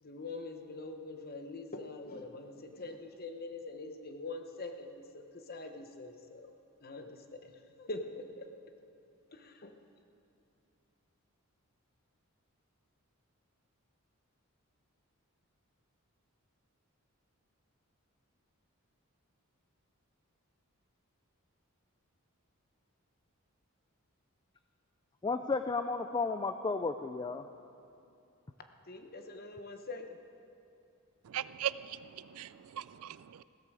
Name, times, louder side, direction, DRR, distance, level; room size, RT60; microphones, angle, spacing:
voice 1, 0.0-6.5 6.8-7.5 7.8-8.5 9.3-9.7 28.9-30.2, left 2 dB, 45° left, 1.0 m, -44 dB
voice 2, 25.2-27.5, left 4 dB, 20° left, 0.3 m, -33 dB
voice 3, 31.2-33.4, right 10 dB, 70° right, 0.4 m, -39 dB
16.0 x 13.5 x 4.9 m
head